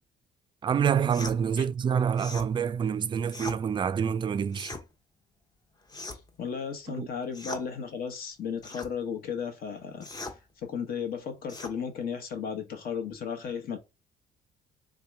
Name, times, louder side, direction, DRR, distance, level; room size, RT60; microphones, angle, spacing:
voice 1, 0.6-4.8 6.9-7.1, right 7 dB, 30° right, 0.3 m, -27 dB
sound 1, 1.1-1.4 2.2-2.5 3.3-3.6 4.5-4.8 5.9-6.3 7.3-7.7 8.6-8.9 10.0-10.4 11.5-11.8, left 2 dB, 25° left, 0.8 m, -39 dB
voice 2, 5.9-10.3 10.6-13.8, left 7 dB, 60° left, 1.1 m, -35 dB
3.7 x 2.8 x 3.3 m
cardioid pair, 110°, 17 cm